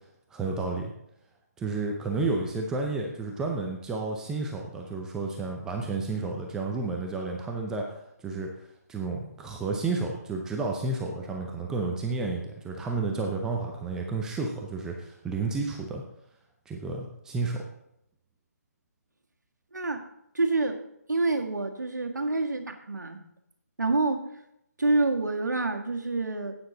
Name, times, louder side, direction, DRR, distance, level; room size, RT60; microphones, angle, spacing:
voice 1, 0.3-0.9 1.6-16.0 16.7-17.7, right 3 dB, 5° right, 0 dB, 0.6 m, -31 dB
voice 2, 19.7-20.0 20.3-20.8 21.1-23.2 23.8-24.3 24.8-26.6, right 2 dB, 85° right, 4 dB, 1.6 m, -27 dB
11.5 x 8.9 x 3.9 m, 0.80 s
figure-of-eight pair, 155°, 9 cm